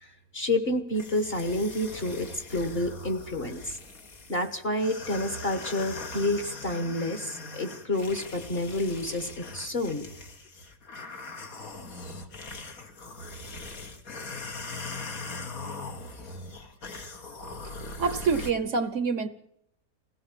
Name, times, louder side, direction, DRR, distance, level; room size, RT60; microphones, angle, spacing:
voice 1, 0.0-3.8 4.3-10.1, left 1 dB, 40° left, 7 dB, 1.7 m, -29 dB
sound 1, 0.9-18.5, left 3 dB, 70° left, 2.3 m, -41 dB
voice 2, 17.6-19.3, right 5 dB, 60° right, 12 dB, 1.2 m, -28 dB
21.5 x 16.5 x 7.4 m, 0.76 s
omnidirectional pair, 1.6 m